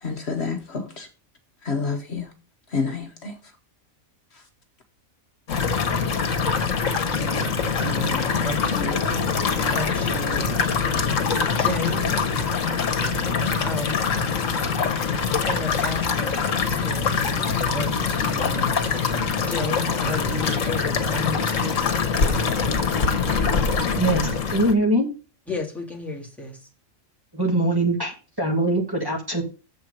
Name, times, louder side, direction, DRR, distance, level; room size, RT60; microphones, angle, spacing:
voice 1, 0.0-1.1 1.6-2.3 2.7-3.4 4.3-4.4, left 4 dB, 55° left, 1.2 m, -28 dB
sound 1, 5.5-24.7, left 5 dB, 70° left, 1.5 m, -24 dB
voice 2, 6.9-9.0 9.7-10.6 11.5-12.1 13.6-14.0 15.4-19.0 19.4-21.9 25.5-26.7, left 1 dB, ahead, 1.9 m, -33 dB
voice 3, 24.0-25.1 27.3-29.4, right 1 dB, 15° right, 1.7 m, -22 dB
7.5 x 4.5 x 6.5 m
omnidirectional pair, 1.4 m